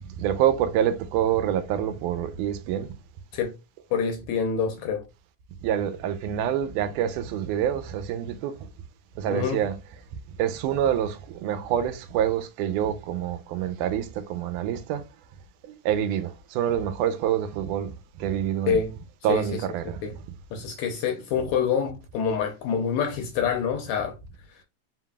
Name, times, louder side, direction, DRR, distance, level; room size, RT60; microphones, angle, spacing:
voice 1, 0.2-2.9 5.6-8.6 9.2-9.7 10.4-15.0 15.7-17.9 18.2-18.8 19.2-20.0, right 10 dB, 80° right, 2.0 m, -26 dB
voice 2, 3.9-5.0 9.3-9.6 18.7-18.9 19.3-19.6 20.0-20.1 20.5-24.2, left 6 dB, 75° left, 1.7 m, -26 dB
4.8 x 3.8 x 2.2 m
omnidirectional pair, 3.7 m